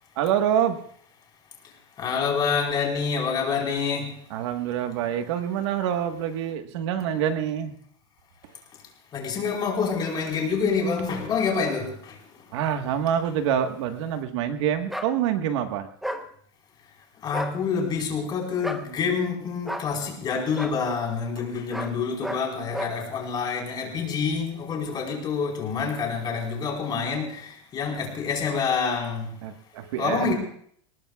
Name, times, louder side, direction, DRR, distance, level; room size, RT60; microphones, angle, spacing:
voice 1, 0.2-0.8 4.3-7.7 11.5-11.7 12.5-15.9 29.4-30.3, right 9 dB, 75° right, 1.5 m, -26 dB
voice 2, 2.0-4.1 9.1-11.9 17.2-27.3 27.7-29.3 30.0-30.3, left 5 dB, 30° left, 4.6 m, -27 dB
sound 1, 14.9-15.1 16.0-16.2 17.3-17.6 18.6-18.9 19.6-19.9 20.5-20.8 21.7-21.9 22.2-22.4 22.7-23.0, equal, ahead, 1.0 m, -32 dB
26.5 x 19.0 x 2.4 m
supercardioid pair, 145°, 15 cm